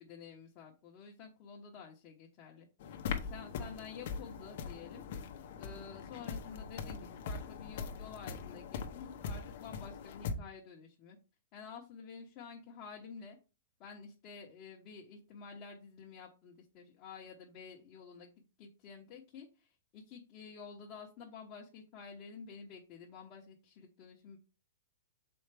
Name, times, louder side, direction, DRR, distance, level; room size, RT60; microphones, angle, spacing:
voice 1, 0.0-5.3 5.6-11.2 11.5-13.4 13.8-18.3 18.6-24.4, left 6 dB, 30° left, -3 dB, 1.1 m, -50 dB
sound 1, 2.8-10.3, left 6 dB, 50° left, 0.8 m, -41 dB
6.3 x 4.4 x 3.4 m, 0.32 s
supercardioid pair, 165°, 0 cm